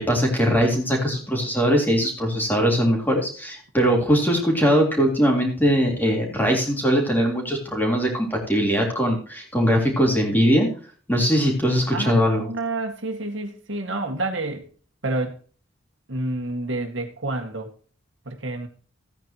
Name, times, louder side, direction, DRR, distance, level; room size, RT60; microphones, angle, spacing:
voice 1, 0.0-10.7 11.1-12.5, equal, 10° left, 0 dB, 3.5 m, -21 dB
voice 2, 11.9-14.6 15.0-15.4 16.1-17.7 18.3-18.7, right 2 dB, 65° right, 5 dB, 1.9 m, -29 dB
15.5 x 9.5 x 3.0 m, 0.40 s
head